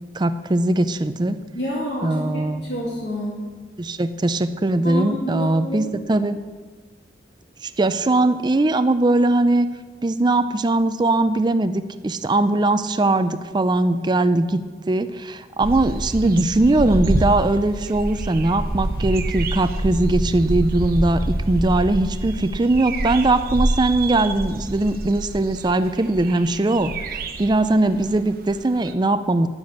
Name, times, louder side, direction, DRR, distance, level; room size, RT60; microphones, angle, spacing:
voice 1, 0.1-1.4 2.0-2.6 3.8-6.4 7.6-9.7 10.0-29.5, right 2 dB, 25° right, 11 dB, 0.4 m, -20 dB
voice 2, 1.5-3.4 4.8-5.9, equal, 70° left, -6 dB, 2.3 m, -28 dB
sound 1, 15.6-28.6 28.8-28.9, right 1 dB, 55° right, 0.8 m, -27 dB
10.5 x 7.5 x 7.2 m, 1.4 s
head